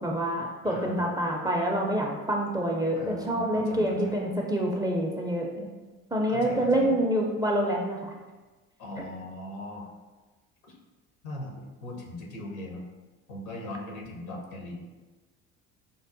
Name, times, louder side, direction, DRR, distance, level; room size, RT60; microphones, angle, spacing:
voice 1, 0.0-5.7 6.1-8.1, right 1 dB, 10° right, -1 dB, 0.4 m, -27 dB
voice 2, 0.6-1.1 2.9-4.1 6.2-6.9 8.8-9.9 11.2-12.8 13.3-14.8, left 1 dB, 80° left, -1 dB, 0.9 m, -39 dB
5.2 x 2.0 x 2.6 m, 1.3 s
hypercardioid pair, 60°, 41 cm